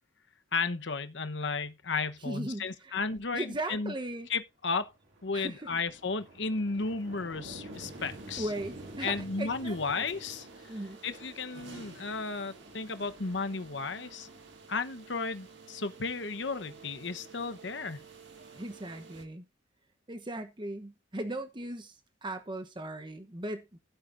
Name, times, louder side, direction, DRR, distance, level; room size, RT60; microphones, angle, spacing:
voice 1, 0.5-3.9 4.3-4.9 5.2-8.5 9.0-10.5 11.0-14.3 14.7-18.0, left 4 dB, 65° left, 1.0 m, -34 dB
voice 2, 2.2-2.9 3.3-4.3 5.3-5.7 8.4-10.1 10.7-11.0 18.6-19.4 20.1-23.8, right 1 dB, 25° right, 1.0 m, -38 dB
meteor flyby, 4.1-4.2 4.7-15.4, right 1 dB, 85° right, 2.3 m, -50 dB
sound 1, 7.7-19.3, right 4 dB, 65° right, 1.9 m, -52 dB
15.0 x 8.6 x 2.6 m
head